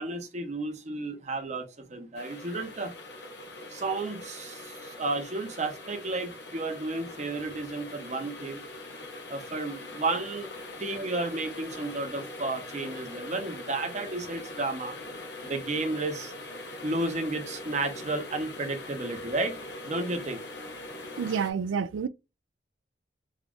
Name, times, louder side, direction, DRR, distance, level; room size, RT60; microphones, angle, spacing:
voice 1, 0.0-2.9 3.7-8.6 9.3-10.5 10.8-15.0 15.4-16.3 16.8-19.6 19.8-20.4, right 2 dB, 35° right, 0.7 m, -32 dB
sound 1, 2.1-21.5, left 2 dB, 60° left, 0.9 m, -42 dB
voice 2, 21.2-22.1, right 6 dB, 85° right, 0.3 m, -29 dB
3.6 x 2.3 x 3.5 m
head